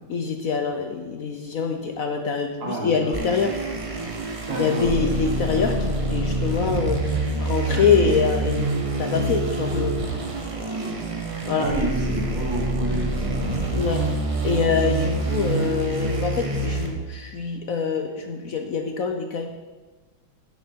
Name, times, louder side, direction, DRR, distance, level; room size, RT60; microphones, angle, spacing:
voice 1, 0.1-3.5 4.6-10.0 11.4-11.7 13.7-19.5, left 5 dB, 65° left, 5 dB, 0.8 m, -25 dB
voice 2, 2.6-3.2 4.5-5.1 7.7-8.1 10.7-10.9 11.6-13.5, right 2 dB, 65° right, -3 dB, 3.1 m, -30 dB
sound 1, 3.1-16.9, right 2 dB, 25° right, 0.7 m, -26 dB
10.5 x 10.5 x 4.5 m, 1.3 s
omnidirectional pair, 2.2 m